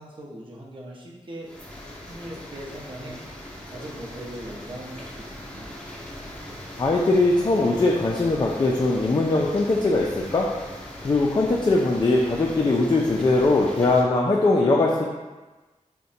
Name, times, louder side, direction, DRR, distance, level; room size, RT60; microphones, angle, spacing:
voice 1, 0.0-1.5 2.1-3.2 3.7-5.7, right 1 dB, 40° right, -3 dB, 0.7 m, -39 dB
sound 1, 1.4-14.0, left 1 dB, 10° left, 0.7 m, -40 dB
voice 2, 6.8-10.5 11.0-15.0, left 2 dB, 35° left, -2 dB, 0.3 m, -21 dB
2.6 x 2.2 x 3.9 m, 1.2 s
wide cardioid pair, 60°, 13 cm